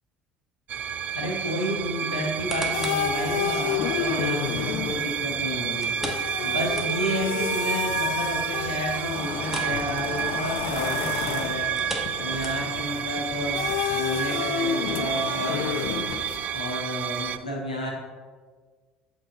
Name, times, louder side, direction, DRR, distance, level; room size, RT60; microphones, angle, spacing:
sound 1, 0.7-17.4, right 9 dB, 45° right, 0.4 m, -30 dB
voice 1, 1.1-6.0 6.4-11.7 12.2-16.0 16.5-17.9, equal, 90° left, -2 dB, 1.1 m, -31 dB
sound 2, 2.2-3.1 3.6-3.7 5.8-7.3 7.6-7.7 8.1-8.2 9.4-9.8 10.1-10.3 11.6-12.9 13.5-13.6, equal, 10° right, 1.2 m, -36 dB
sound 3, 2.4-16.5, left 9 dB, 65° left, 0.4 m, -31 dB
7.9 x 3.9 x 4.2 m, 1.5 s
figure-of-eight pair, 60°, 4 cm